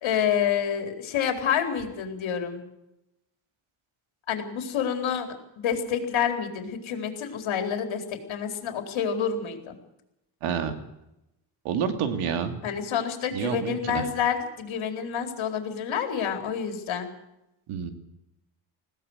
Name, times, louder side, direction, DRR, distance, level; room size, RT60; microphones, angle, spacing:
voice 1, 0.0-2.6 4.3-5.3 5.6-9.8 12.6-17.1, left 8 dB, 65° left, 5 dB, 4.2 m, -28 dB
voice 2, 10.4-10.7 11.6-12.6 13.3-14.0 17.7-17.9, right 7 dB, 80° right, 7 dB, 3.0 m, -28 dB
20.5 x 17.0 x 8.2 m, 0.87 s
cardioid pair, 115°, 50 cm